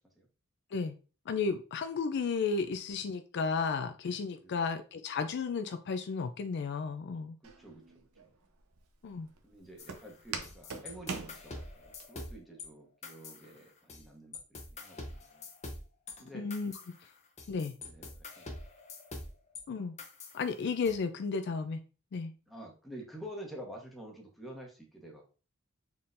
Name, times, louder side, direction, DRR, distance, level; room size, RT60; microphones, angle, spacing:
voice 1, 1.3-7.4 9.0-9.3 16.3-16.7 17.5-17.8 19.7-19.9 20.3-21.8 22.1-22.3, left 5 dB, 55° left, 8 dB, 0.4 m, -33 dB
voice 2, 7.4-8.3 9.4-15.5 16.2-16.5 17.8-18.6 22.5-25.3, right 1 dB, ahead, -1 dB, 1.0 m, -49 dB
Walk footsteps, 7.4-12.0, right 5 dB, 85° right, 0.7 m, -43 dB
sound 1, 9.8-12.7 13.0-14.1 14.3-19.6 20.0-20.9, left 2 dB, 30° left, 0.8 m, -46 dB
4.2 x 3.7 x 2.5 m, 0.35 s
head